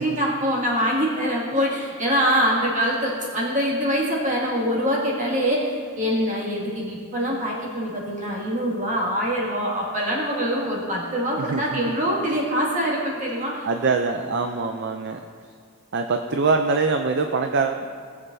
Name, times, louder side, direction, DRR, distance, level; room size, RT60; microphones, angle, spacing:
voice 1, 0.0-13.6, equal, 35° right, -5 dB, 2.2 m, -24 dB
voice 2, 11.4-12.0 13.6-15.2 15.9-17.8, right 4 dB, 50° right, 6 dB, 0.4 m, -24 dB
19.0 x 7.3 x 2.7 m, 2.1 s
head